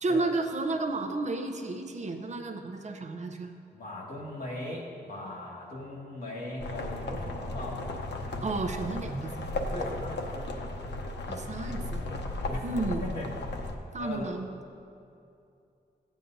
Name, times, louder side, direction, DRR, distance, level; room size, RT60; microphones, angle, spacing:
voice 1, 0.0-3.5 8.4-9.5 11.3-12.0 12.6-13.1 13.9-14.5, right 3 dB, 45° right, 4 dB, 0.6 m, -32 dB
voice 2, 3.7-8.0 9.7-10.5 11.6-11.9 12.5-12.7 13.0-13.3 14.0-14.3, left 1 dB, 60° left, -5 dB, 2.3 m, -39 dB
sound 1, 6.6-13.8, left 2 dB, 90° left, 0.8 m, -35 dB
15.0 x 9.1 x 2.7 m, 2.6 s
wide cardioid pair, 170°, 17 cm